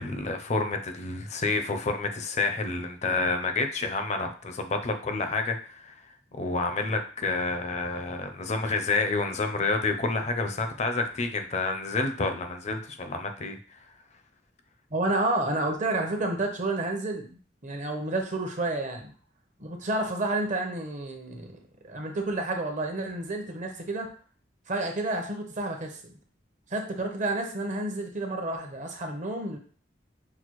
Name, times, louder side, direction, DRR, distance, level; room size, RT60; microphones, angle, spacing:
voice 1, 0.0-13.6, left 3 dB, 40° left, 6 dB, 0.5 m, -29 dB
voice 2, 14.9-19.1 19.6-21.6 21.8-24.1 24.7-26.2 26.7-29.6, right 2 dB, 45° right, 3 dB, 0.8 m, -30 dB
6.0 x 2.3 x 3.0 m, 0.40 s
head